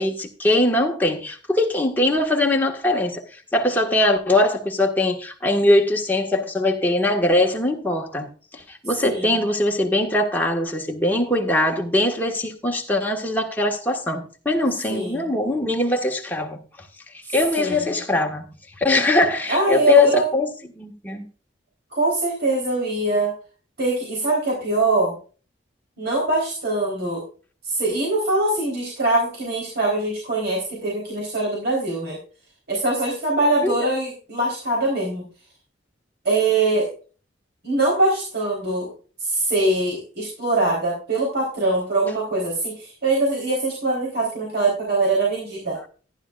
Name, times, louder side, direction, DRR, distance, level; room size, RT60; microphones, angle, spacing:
voice 1, 0.0-3.2 3.5-8.3 8.7-16.6 17.3-18.5 18.8-20.5 20.8-21.2 33.6-33.7, left 2 dB, 10° left, 1.7 m, -21 dB
voice 2, 9.0-9.4 14.9-15.3 17.6-18.0 19.5-20.3 21.9-23.3 23.8-25.2 26.0-27.2 27.6-32.2 32.7-35.2 36.2-36.9 37.6-38.9 39.2-45.8, right 2 dB, 65° right, 4.0 m, -23 dB
14.0 x 11.0 x 2.5 m
head